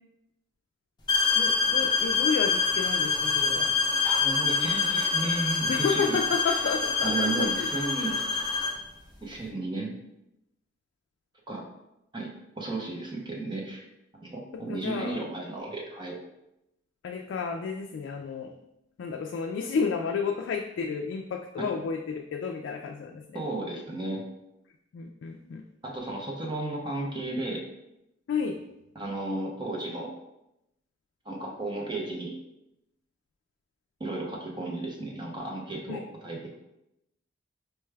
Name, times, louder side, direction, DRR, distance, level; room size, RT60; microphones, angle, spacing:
sound 1, 1.1-8.8, left 4 dB, 25° left, 0.6 m, -26 dB
voice 1, 1.4-3.7 5.7-7.7 14.7-15.2 17.0-18.5 19.0-23.4 24.9-25.6 28.3-28.6 35.9-36.0, left 5 dB, 70° left, 2 dB, 0.3 m, -31 dB
voice 2, 4.0-6.2 6.5-6.6 7.0-8.2 9.2-9.9 11.5-11.6 12.1-12.3 12.6-13.8 14.1-16.2 21.6-21.7 23.3-24.2 25.8-27.6 28.9-30.1 31.2-32.4 34.0-36.5, right 2 dB, 25° right, -1 dB, 0.7 m, -34 dB
4.5 x 2.3 x 3.2 m, 0.87 s
head